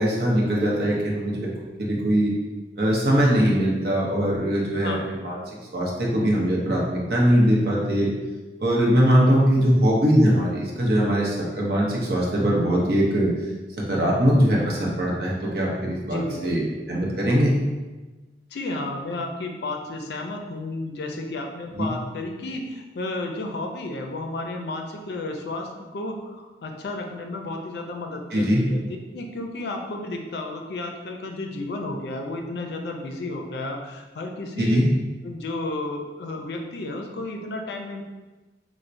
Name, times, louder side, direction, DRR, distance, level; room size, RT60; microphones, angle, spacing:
voice 1, 0.0-1.5 1.8-2.3 2.8-5.4 5.7-8.1 8.6-13.3 13.9-16.6 16.9-17.6 21.7-21.9 28.3-28.6 34.6-34.8, equal, 60° right, -3 dB, 0.7 m, -21 dB
voice 2, 16.1-16.6 18.5-34.8 35.2-38.0, left 2 dB, 70° left, 3 dB, 0.4 m, -32 dB
4.3 x 2.1 x 2.5 m, 1.2 s
head